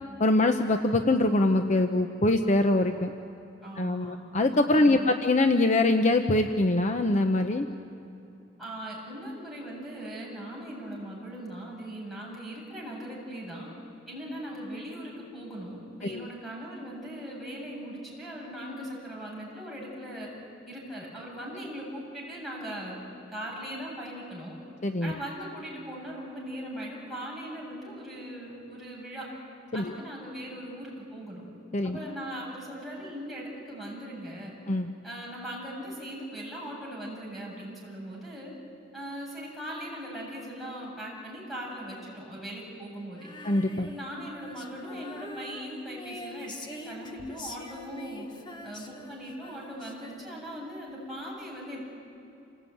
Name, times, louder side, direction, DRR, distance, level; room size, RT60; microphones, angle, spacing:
voice 1, 0.2-3.1 3.8-7.7 16.0-16.3 24.8-25.1 29.7-29.9 31.7-32.0 34.7-34.9 43.4-43.9, left 2 dB, 40° left, 6 dB, 0.8 m, -23 dB
voice 2, 3.6-4.1 4.7-5.2 8.6-13.7 14.1-20.3 20.7-23.0 23.3-24.6 25.0-29.3 29.7-31.4 31.8-34.5 35.0-38.5 38.9-43.3 43.9-48.3 48.6-51.9, equal, ahead, -5 dB, 7.5 m, -39 dB
Female singing, 43.1-50.6, left 2 dB, 25° left, 1.7 m, -44 dB
27.5 x 18.5 x 9.3 m, 2.9 s
head